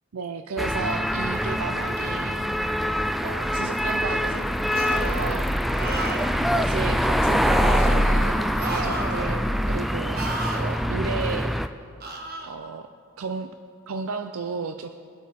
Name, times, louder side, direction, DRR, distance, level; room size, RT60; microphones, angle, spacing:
voice 1, 0.1-2.4 3.2-4.5 4.8-5.5 6.5-10.2 10.6-11.5 12.5-12.9 13.2-13.5 13.9-14.9, right 5 dB, 85° right, 7 dB, 0.5 m, -33 dB
sound 1, 0.6-11.7, equal, ahead, 0.3 m, -24 dB
sound 2, 4.7-5.2 5.7-6.4 7.5-8.0 8.6-9.4 10.1-10.6 12.0-12.5, right 2 dB, 45° right, 1.3 m, -32 dB
22.0 x 8.4 x 4.3 m, 2.2 s
head